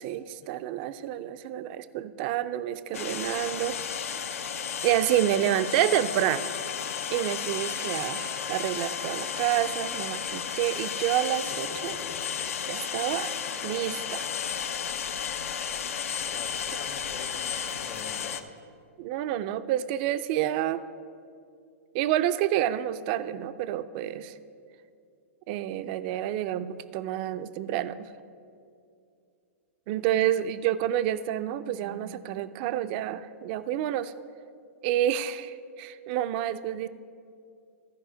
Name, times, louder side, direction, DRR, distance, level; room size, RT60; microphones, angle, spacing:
voice 1, 0.0-3.8 4.3-4.4 4.8-6.5 7.1-12.0 12.7-13.3 13.6-14.2 19.0-20.8 21.9-24.4 25.5-28.1 29.9-34.1 34.8-36.9, right 12 dB, 45° right, 13 dB, 0.4 m, -28 dB
sound 1, 2.9-18.4, left 7 dB, 80° left, 0.6 m, -33 dB
sound 2, 11.4-12.5 13.2-15.2 15.7-15.8 16.3-16.5 16.9-18.7, left 5 dB, 55° left, 1.5 m, -50 dB
voice 2, 16.2-18.5, left 6 dB, 30° left, 9 dB, 0.7 m, -46 dB
14.5 x 4.9 x 5.0 m, 2.4 s
hypercardioid pair, 130°, 7 cm